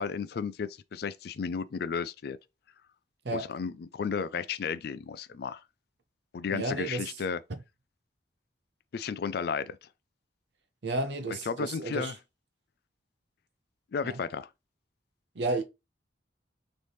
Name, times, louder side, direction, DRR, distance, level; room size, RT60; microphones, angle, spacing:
voice 1, 0.0-2.4 3.3-5.6 6.3-7.4 8.9-9.8 11.5-12.1 13.9-14.5, left 6 dB, 55° left, 0.3 m, -33 dB
voice 2, 6.5-7.2 10.8-12.1 14.0-14.2 15.3-15.6, right 2 dB, 60° right, 0.6 m, -32 dB
4.0 x 3.1 x 3.4 m
head